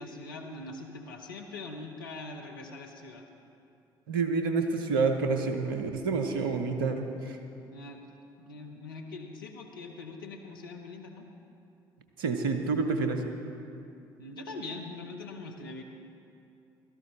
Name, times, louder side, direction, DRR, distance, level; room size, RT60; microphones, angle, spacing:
voice 1, 0.0-3.2 7.7-8.0 8.4-11.3 14.2-15.8, left 3 dB, 85° left, 3 dB, 0.9 m, -42 dB
voice 2, 4.1-7.4 12.2-13.2, right 4 dB, 80° right, 6 dB, 0.8 m, -28 dB
17.0 x 13.0 x 3.2 m, 2.6 s
figure-of-eight pair, 50°, 11 cm